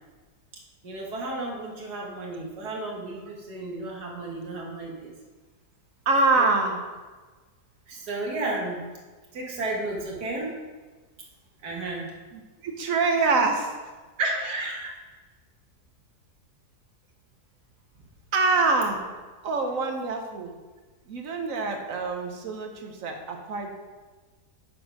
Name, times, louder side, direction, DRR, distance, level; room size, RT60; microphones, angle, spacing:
voice 1, 0.8-5.1 6.4-6.5 7.9-8.8 9.3-10.5 11.6-12.1 14.2-14.9, right 2 dB, 75° right, -2 dB, 2.0 m, -32 dB
voice 2, 6.1-6.8 12.3-13.7 18.3-19.1 19.4-20.5 21.1-23.7, right 3 dB, 60° right, 3 dB, 1.2 m, -25 dB
6.6 x 6.0 x 5.2 m, 1.3 s
omnidirectional pair, 1.7 m